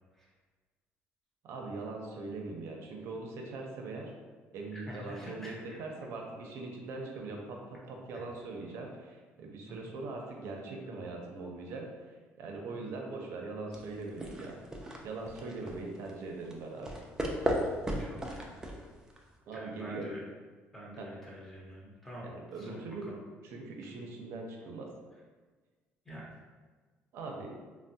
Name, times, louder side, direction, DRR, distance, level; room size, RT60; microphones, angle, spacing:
voice 1, 1.4-4.1 4.5-14.6 15.0-16.9 19.5-20.0 21.0-21.1 22.2-23.1 23.4-24.9 27.1-27.5, right 3 dB, 65° right, 1 dB, 0.5 m, -41 dB
voice 2, 4.7-5.8 8.1-8.2 9.7-9.9 12.7-12.9 15.6-15.7 18.0-18.5 19.5-20.2 20.7-22.3 22.6-23.2 23.8-23.9 26.0-26.3, equal, 5° left, -5 dB, 0.7 m, -46 dB
sound 1, 13.7-19.3, equal, 15° right, 0.3 m, -36 dB
3.3 x 2.0 x 2.6 m, 1.4 s
cardioid pair, 135°, 5 cm